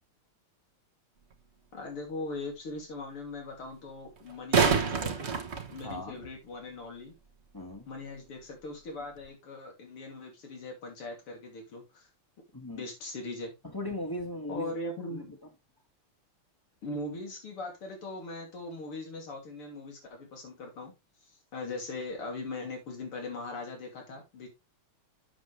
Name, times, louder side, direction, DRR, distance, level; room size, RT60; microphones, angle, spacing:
sound 1, 1.3-1.4 4.2-6.3 9.2-9.3, right 5 dB, 35° right, 1.2 m, -27 dB
voice 1, 1.7-5.3 5.7-7.1 7.9-12.1 12.7-13.5 14.5-15.3 16.8-20.9 21.5-24.5, left 2 dB, 90° left, 2 dB, 3.7 m, -40 dB
voice 2, 5.8-6.2 7.5-7.9 12.5-12.8 13.6-14.7 15.1-15.2, left 1 dB, 10° left, 4 dB, 1.3 m, -37 dB
7.9 x 7.2 x 3.2 m, 0.24 s
omnidirectional pair, 2.4 m